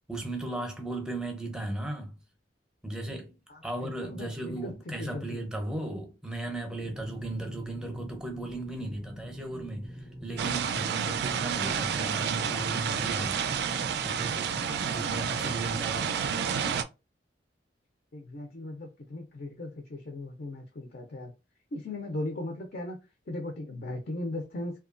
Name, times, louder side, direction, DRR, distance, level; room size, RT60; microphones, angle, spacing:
voice 1, 0.1-2.2 2.8-3.4 3.6-9.9 10.2-13.5 14.0-16.1, right 2 dB, 5° right, 0.6 m, -36 dB
voice 2, 3.5-5.4 18.1-21.3 21.7-23.0 23.3-24.8, left 1 dB, 55° left, 0.5 m, -38 dB
sound 1, 6.8-16.7, equal, 85° left, 1.0 m, -44 dB
sound 2, 10.4-16.8, right 7 dB, 65° right, 0.3 m, -30 dB
2.9 x 2.3 x 2.4 m
head